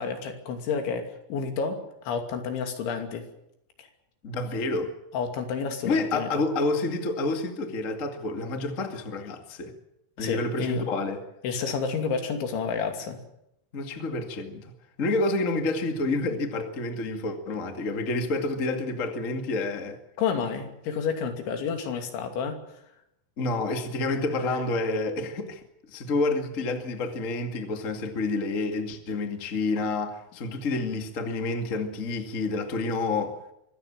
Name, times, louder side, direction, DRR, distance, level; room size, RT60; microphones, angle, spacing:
voice 1, 0.0-3.3 3.8-3.9 5.1-6.3 10.2-10.9 11.4-13.2 20.2-22.6, left 6 dB, 75° left, 5.0 m, -30 dB
voice 2, 4.2-5.0 5.8-9.7 10.2-11.2 13.7-14.6 15.0-20.0 23.4-25.6 25.9-33.4, left 2 dB, 45° left, 1.0 m, -29 dB
24.5 x 16.0 x 8.9 m
omnidirectional pair, 5.5 m